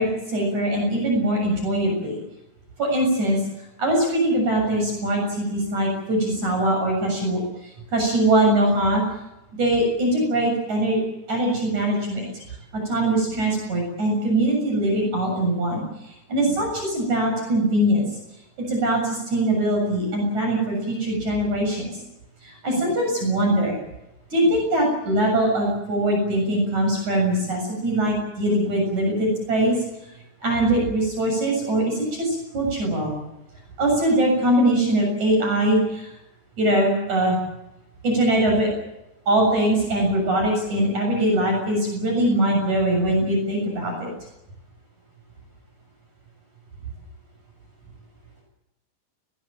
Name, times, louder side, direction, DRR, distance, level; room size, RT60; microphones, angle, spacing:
voice 1, 0.0-2.2 2.8-3.4 3.8-9.0 9.6-11.0 11.3-18.1 18.7-22.0 22.4-23.8 24.3-29.8 30.4-33.1 33.8-36.2 36.6-37.4 38.0-38.7 39.3-44.1, right 1 dB, 45° right, 1 dB, 8.4 m, -22 dB
21.5 x 20.5 x 8.8 m, 0.93 s
omnidirectional pair, 4.8 m